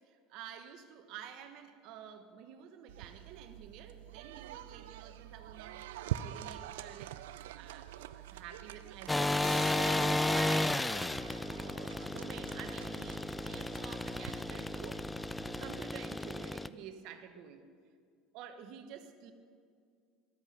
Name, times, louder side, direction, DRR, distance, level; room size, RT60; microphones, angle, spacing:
voice 1, 0.1-5.8 6.1-7.1 7.5-11.1 11.6-17.6 18.3-19.3, right 8 dB, 65° right, 8 dB, 1.0 m, -50 dB
sound 1, 2.9-15.8, right 13 dB, 85° right, 0.3 m, -46 dB
sound 2, 9.1-16.7, left 2 dB, 10° left, 0.3 m, -33 dB
sound 3, 9.4-15.0, left 3 dB, 70° left, 2.7 m, -50 dB
12.0 x 8.2 x 5.8 m, 2.2 s
supercardioid pair, 90°, 0 cm